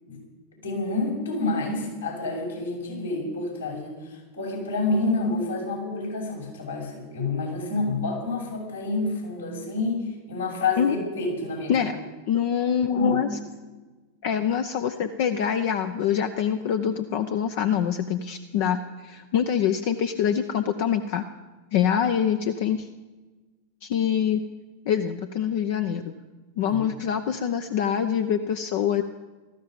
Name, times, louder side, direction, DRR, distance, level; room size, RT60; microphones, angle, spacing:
voice 1, 0.6-11.9 12.9-13.2 26.6-26.8, left 3 dB, 75° left, -3 dB, 6.8 m, -28 dB
voice 2, 12.3-13.3 14.2-21.2 21.7-22.9 23.8-24.4 24.9-26.1 26.6-29.0, left 8 dB, 50° left, 8 dB, 0.7 m, -25 dB
18.0 x 14.5 x 5.4 m, 1.2 s
figure-of-eight pair, 90°, 0 cm